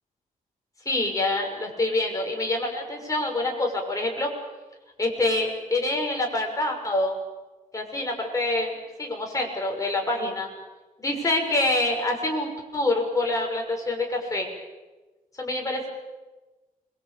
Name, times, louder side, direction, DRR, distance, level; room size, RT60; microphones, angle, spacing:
voice 1, 0.8-4.3 5.0-7.1 7.7-10.5 11.0-14.5 15.4-15.9, left 2 dB, 20° left, 1 dB, 6.3 m, -26 dB
26.5 x 22.5 x 8.6 m, 1.2 s
wide cardioid pair, 115°, 15 cm